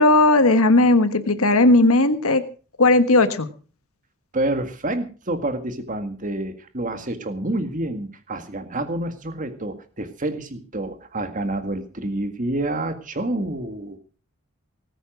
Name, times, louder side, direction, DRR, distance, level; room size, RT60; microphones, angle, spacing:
voice 1, 0.0-2.4 2.8-3.5, left 2 dB, 85° left, 10 dB, 1.5 m, -16 dB
voice 2, 4.3-14.0, right 1 dB, 40° right, 8 dB, 1.9 m, -28 dB
19.5 x 9.2 x 6.1 m, 0.38 s
head